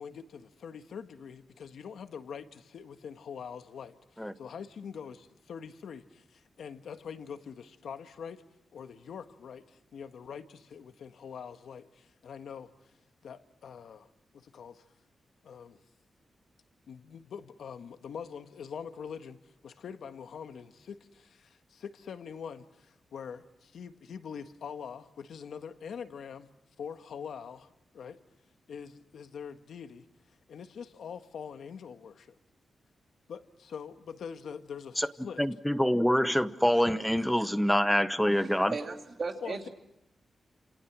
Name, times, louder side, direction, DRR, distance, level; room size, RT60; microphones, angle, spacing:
voice 1, 0.0-8.4 8.7-12.7 13.2-14.1 14.3-14.8 15.4-15.8 16.9-26.5 26.8-28.2 28.7-30.0 30.5-32.3 33.3-35.4 39.4-39.7, left 7 dB, 85° left, 8 dB, 1.5 m, -44 dB
voice 2, 35.4-38.7, equal, 5° left, 11 dB, 1.0 m, -26 dB
voice 3, 38.4-39.7, right 4 dB, 40° right, 3 dB, 2.8 m, -37 dB
30.0 x 28.0 x 6.2 m, 0.84 s
wide cardioid pair, 165°, 0 cm